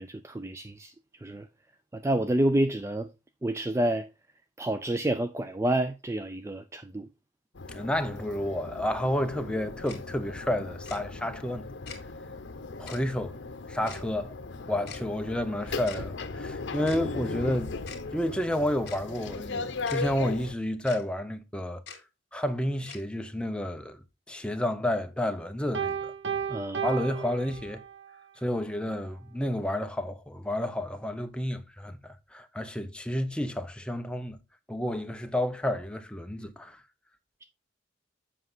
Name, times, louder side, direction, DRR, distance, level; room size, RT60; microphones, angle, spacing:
voice 1, 0.0-1.5 1.9-3.1 3.4-4.1 4.6-7.1 26.5-26.8, right 1 dB, 15° right, 0.4 m, -29 dB
sound 1, 7.5-20.5, left 3 dB, 75° left, 0.8 m, -38 dB
voice 2, 7.7-11.7 12.8-13.4 13.7-14.3 14.7-17.7 18.1-21.8 22.3-24.0 24.3-26.1 26.8-27.8 28.4-34.4 34.7-36.8, left 1 dB, 5° left, 0.7 m, -30 dB
Tick-tock, 9.9-10.0 10.9-11.0 11.9-12.0 12.9-13.0 13.9-14.0 14.9-15.0 15.9-16.0 16.9-17.0 17.9-18.0 18.9-19.0 19.9-20.0 20.9-21.0 21.9-22.0 22.9-23.0, left 6 dB, 55° left, 2.0 m, -43 dB
Piano, 25.7-28.1, right 7 dB, 70° right, 1.1 m, -33 dB
7.6 x 5.6 x 3.9 m
head